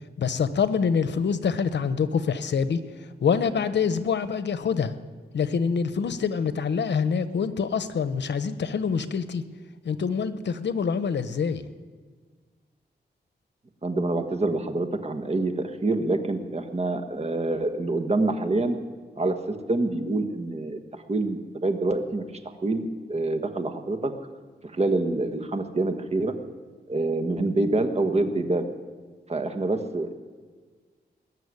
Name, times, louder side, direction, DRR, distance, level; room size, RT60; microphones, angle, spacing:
voice 1, 0.2-2.8 3.2-4.9 5.3-9.4 9.8-11.6, left 6 dB, 80° left, 12 dB, 0.9 m, -25 dB
voice 2, 13.8-18.8 19.2-20.8 21.1-22.2 22.6-24.1 24.7-26.3 26.9-28.6 29.3-30.1, right 2 dB, 35° right, 5 dB, 1.5 m, -26 dB
21.0 x 7.1 x 9.8 m, 1.5 s
wide cardioid pair, 95°, 18 cm